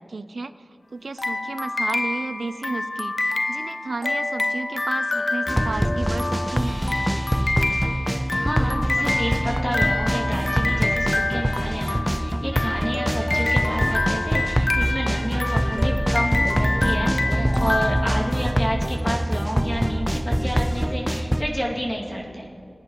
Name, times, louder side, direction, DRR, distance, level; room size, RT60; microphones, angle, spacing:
voice 1, 0.1-0.5 0.9-6.8 17.4-17.8, right 3 dB, 85° right, 13 dB, 0.4 m, -33 dB
sound 1, 1.2-18.9, left 2 dB, 50° left, 0.4 m, -27 dB
sound 2, 5.5-21.4, equal, 5° right, 0.5 m, -24 dB
voice 2, 7.7-22.5, equal, 20° left, -3 dB, 2.3 m, -30 dB
sound 3, 8.9-19.3, right 1 dB, 40° right, 2.7 m, -40 dB
19.0 x 10.5 x 3.0 m, 2.7 s
wide cardioid pair, 55°, 0 cm